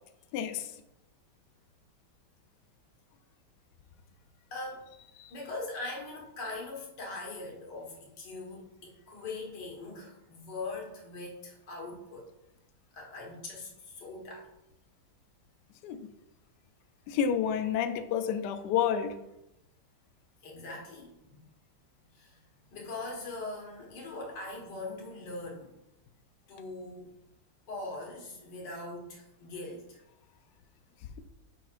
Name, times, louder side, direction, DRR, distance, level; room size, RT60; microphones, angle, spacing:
voice 1, 0.3-0.8 5.2-5.3 15.8-16.1 17.1-19.2, left 8 dB, 85° left, 8 dB, 0.9 m, -30 dB
voice 2, 4.5-4.9 5.3-12.3 12.9-14.5 20.4-21.4 22.1-22.4 22.7-25.7 26.5-27.1 27.7-30.0, left 2 dB, 55° left, -2 dB, 2.0 m, -41 dB
7.2 x 5.7 x 2.5 m, 0.88 s
omnidirectional pair, 2.4 m